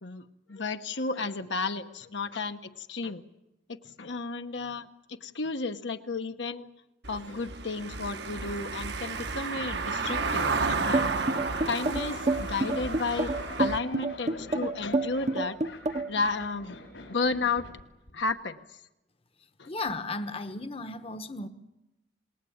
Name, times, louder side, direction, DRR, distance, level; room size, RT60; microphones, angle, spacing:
voice 1, 0.0-3.2 3.7-6.7 7.1-11.1 11.6-15.6 16.1-16.8 17.1-17.7 18.1-18.8 19.6-19.7, left 3 dB, 70° left, 7 dB, 1.1 m, -33 dB
Car passing by / Engine, 7.0-13.8, right 4 dB, 60° right, 1.2 m, -32 dB
sound 1, 10.0-17.8 18.1-18.3, left 2 dB, 85° left, 5.9 m, -43 dB
sound 2, 10.9-16.2, right 2 dB, 35° right, 0.9 m, -28 dB
voice 2, 19.7-21.5, left 2 dB, 30° left, 10 dB, 1.0 m, -35 dB
28.0 x 20.0 x 8.7 m, 0.97 s
head